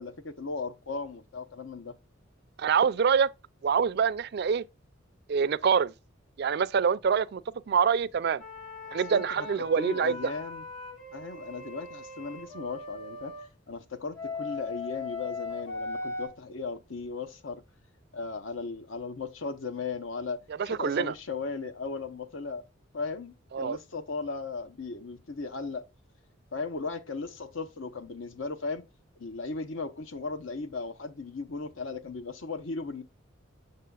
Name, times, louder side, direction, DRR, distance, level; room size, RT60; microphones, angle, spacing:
voice 1, 0.0-2.0 8.8-10.6 11.1-13.3 13.7-17.6 18.1-22.7 22.9-25.9 26.5-28.8 29.2-33.0, left 4 dB, 75° left, 0.8 m, -37 dB
voice 2, 2.6-3.3 3.6-4.6 5.3-5.9 6.4-7.4 7.7-8.4 8.9-10.3 20.6-21.1 23.5-23.8, right 6 dB, 50° right, 0.3 m, -25 dB
sound 1, 8.4-13.4 14.1-16.3, left 3 dB, 50° left, 3.8 m, -39 dB
6.7 x 6.7 x 2.3 m
head